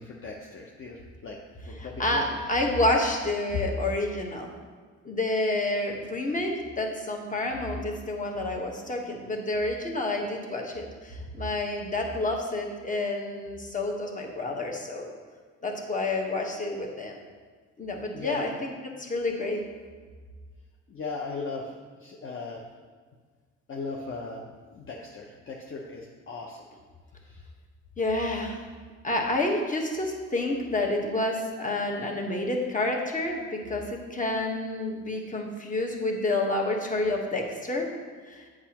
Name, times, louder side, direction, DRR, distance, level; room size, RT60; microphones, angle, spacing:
voice 1, 0.0-1.4 1.7-2.4 18.1-18.5 20.9-21.7 22.0-22.6 23.7-26.6 27.2-27.4, left 3 dB, 45° left, -1 dB, 0.8 m, -38 dB
voice 2, 1.8-4.5 5.0-15.1 15.6-17.2 17.8-18.7 19.0-19.6 28.0-28.6 29.0-37.9 38.3-38.4, left 2 dB, 25° left, 1 dB, 1.2 m, -29 dB
8.2 x 6.1 x 2.9 m, 1.5 s
cardioid pair, 90°, 30 cm